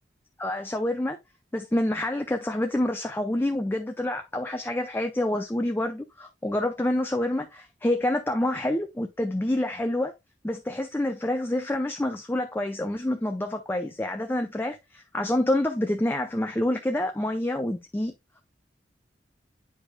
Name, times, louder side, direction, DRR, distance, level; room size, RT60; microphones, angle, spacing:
voice 1, 0.4-1.2 1.5-10.1 10.4-18.1, left 1 dB, 10° left, 0.5 m, -27 dB
8.9 x 5.0 x 2.2 m
head